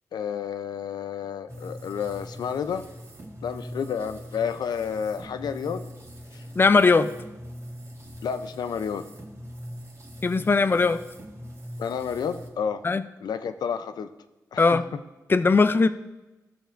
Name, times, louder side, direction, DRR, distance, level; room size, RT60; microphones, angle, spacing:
voice 1, 0.1-2.9 3.4-5.9 6.3-6.4 8.2-9.0 11.8-12.8 13.2-14.1 14.5-15.0, left 7 dB, 85° left, 10 dB, 0.5 m, -30 dB
sound 1, 1.5-12.5, equal, 45° right, 1.7 m, -42 dB
voice 2, 6.6-7.1 10.2-11.0 12.8-13.0 14.6-14.8 15.3-15.9, left 4 dB, 30° left, 12 dB, 0.4 m, -19 dB
13.5 x 7.2 x 2.5 m, 1.0 s
cardioid pair, 75°, 7 cm